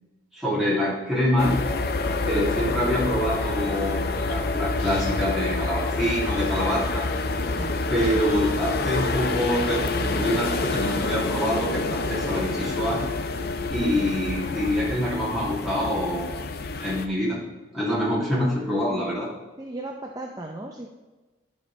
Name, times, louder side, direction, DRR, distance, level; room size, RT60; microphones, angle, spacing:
voice 1, 0.3-1.6 2.3-7.1 7.9-13.0 13.7-16.4 16.8-17.4 17.7-19.3, equal, ahead, -8 dB, 2.6 m, -26 dB
sound 1, 1.4-17.1, left 3 dB, 55° left, 0.5 m, -27 dB
voice 2, 19.6-20.9, right 2 dB, 20° right, 1 dB, 0.5 m, -36 dB
11.5 x 5.4 x 3.2 m, 1.2 s
head